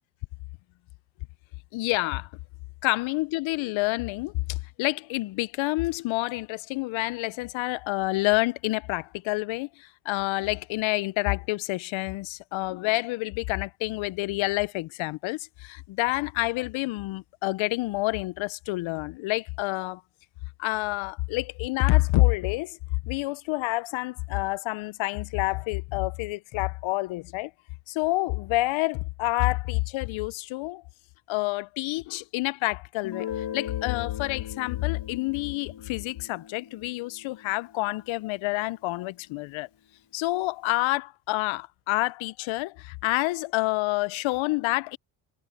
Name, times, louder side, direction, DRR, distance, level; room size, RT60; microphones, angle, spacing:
voice 1, 1.7-2.3 2.8-20.0 20.6-22.8 23.0-27.5 27.9-30.8 31.3-39.7 40.1-45.0, left 21 dB, 75° left, 0.8 m, -28 dB
Guitar, 33.0-38.5, left 9 dB, 60° left, 2.3 m, -40 dB
hypercardioid pair, 50°, 47 cm